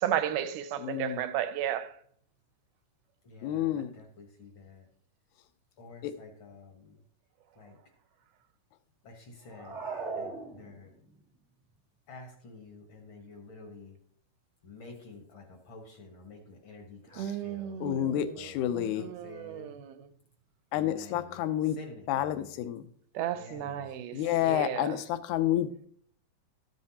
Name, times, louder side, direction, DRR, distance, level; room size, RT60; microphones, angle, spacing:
voice 1, 0.0-1.9 17.2-20.1 23.2-24.1 24.4-25.0, right 10 dB, 80° right, 2.1 m, -34 dB
voice 2, 0.8-1.2 3.4-3.9 6.0-6.1 17.8-19.1 20.7-21.8 22.1-22.8 24.1-25.9, left 11 dB, 75° left, 1.9 m, -29 dB
voice 3, 3.2-4.8 5.8-7.0 7.6-7.8 9.0-9.8 10.1-10.9 12.1-14.0 14.6-19.7 20.7-22.6 23.3-23.9, left 3 dB, 55° left, 1.4 m, -50 dB
sound 1, 9.4-11.1, right 4 dB, 55° right, 0.7 m, -38 dB
13.0 x 7.6 x 2.9 m
omnidirectional pair, 3.8 m